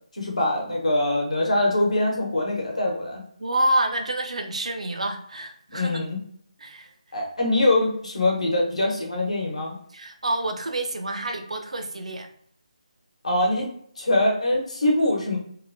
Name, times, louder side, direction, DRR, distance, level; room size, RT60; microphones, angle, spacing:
voice 1, 0.1-3.2 5.7-6.2 7.1-9.8 13.2-13.7 14.0-15.4, left 1 dB, 65° left, -1 dB, 0.9 m, -23 dB
voice 2, 3.4-6.0 6.6-6.9 9.9-12.3, right 1 dB, 70° right, 5 dB, 0.5 m, -28 dB
2.8 x 2.2 x 2.6 m, 0.65 s
figure-of-eight pair, 155°, 4 cm